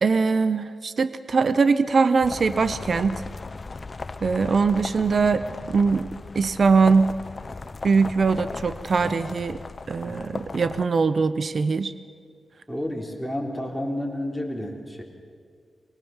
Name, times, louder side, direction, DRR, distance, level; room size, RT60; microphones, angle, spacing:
voice 1, 0.0-3.2 4.2-7.2 7.8-9.6 9.9-11.9, right 4 dB, 55° right, 13 dB, 0.7 m, -22 dB
sound 1, 2.2-10.8, left 3 dB, 40° left, 0.7 m, -37 dB
voice 2, 12.7-15.0, left 1 dB, ahead, 1 dB, 3.7 m, -30 dB
24.5 x 18.5 x 7.2 m, 2.1 s
cardioid pair, 75°, 0 cm